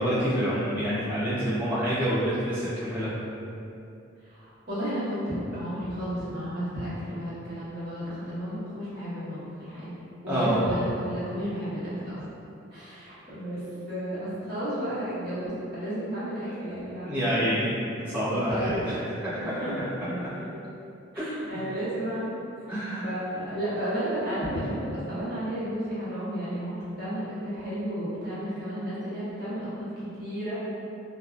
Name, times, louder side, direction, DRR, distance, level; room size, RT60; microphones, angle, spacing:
voice 1, 0.0-3.1 10.3-10.6 17.0-17.7 18.0-18.9 19.2-19.5 21.2-21.6 22.7-23.1 24.5-24.6, equal, 10° right, -13 dB, 0.8 m, -27 dB
voice 2, 4.3-10.0 10.2-12.2 12.7-17.4 18.3-18.9 19.3-19.7 20.1-20.6 21.1-22.3 23.0-30.5, equal, 55° right, -12 dB, 1.0 m, -33 dB
2.7 x 2.3 x 2.3 m, 2.7 s
head